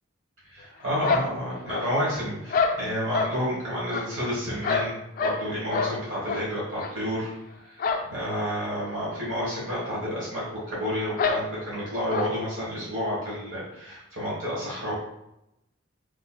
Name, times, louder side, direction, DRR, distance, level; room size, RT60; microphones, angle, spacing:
voice 1, 0.4-7.3 7.6-7.8 8.1-14.9, equal, 70° right, -7 dB, 1.4 m, -30 dB
sound 1, 1.0-2.1 2.5-3.4 3.9-5.5 5.7-6.0 6.2-6.4 6.8-6.9 7.8-8.1 8.3-8.4 8.8-8.9 9.8-9.9 10.2-10.3 11.2-11.4 12.1-12.3, left 4 dB, 45° left, 0.3 m, -27 dB
3.7 x 3.1 x 2.2 m, 0.83 s
head